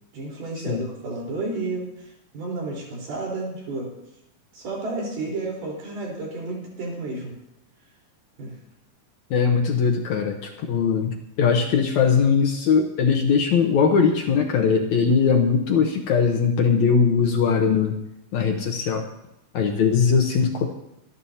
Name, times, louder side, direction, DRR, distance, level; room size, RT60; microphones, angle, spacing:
voice 1, 0.1-3.9 4.5-7.3 8.4-8.5, right 2 dB, 85° right, -3 dB, 6.1 m, -31 dB
voice 2, 9.3-18.0 18.3-19.1 19.5-20.7, left 6 dB, 65° left, 2 dB, 2.0 m, -20 dB
26.0 x 11.0 x 2.9 m, 0.87 s
omnidirectional pair, 4.2 m